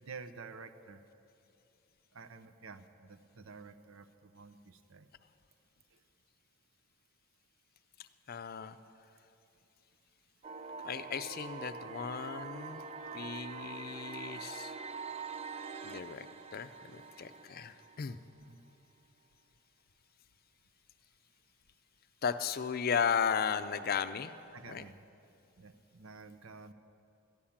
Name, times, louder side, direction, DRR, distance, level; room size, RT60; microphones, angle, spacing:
voice 1, 0.0-1.0 2.1-5.1 18.5-18.6 24.5-25.0 25.6-26.7, right 4 dB, 90° right, 11 dB, 0.7 m, -50 dB
voice 2, 8.3-8.8 10.8-12.8 13.1-14.8 15.8-18.2 22.2-24.3 24.7-24.9, left 7 dB, 45° left, 11 dB, 0.5 m, -35 dB
sound 1, 10.4-18.4, right 5 dB, 30° right, 0.4 m, -45 dB
14.0 x 10.0 x 7.2 m, 2.7 s
head